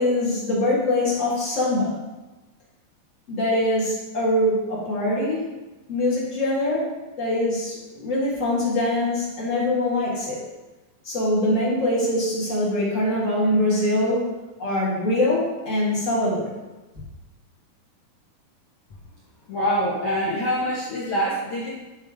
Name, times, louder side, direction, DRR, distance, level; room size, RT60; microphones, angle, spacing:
voice 1, 0.0-1.9 3.3-5.4 5.9-6.9 7.2-10.4 11.0-14.3 14.6-16.5, left 1 dB, 50° left, -6 dB, 0.9 m, -23 dB
voice 2, 19.5-21.7, equal, 70° left, -7 dB, 1.4 m, -25 dB
8.9 x 3.4 x 4.8 m, 1.1 s
omnidirectional pair, 4.3 m